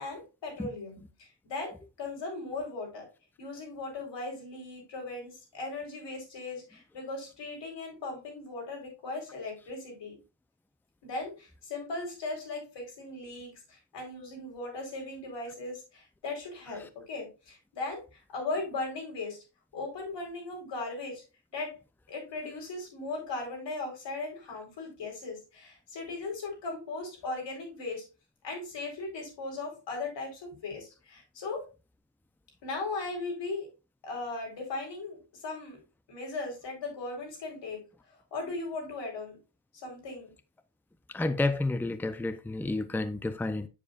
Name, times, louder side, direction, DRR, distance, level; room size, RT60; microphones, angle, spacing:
voice 1, 0.0-3.1 3.4-10.2 11.0-19.4 19.7-21.2 21.5-21.8 22.1-28.1 28.4-31.6 32.6-33.7 34.0-35.8 36.1-37.8 38.3-39.4 39.7-40.3, left 3 dB, 85° left, 4.4 m, -38 dB
voice 2, 41.1-43.7, left 2 dB, 5° left, 0.6 m, -30 dB
8.3 x 7.4 x 2.5 m
cardioid pair, 95°, 42 cm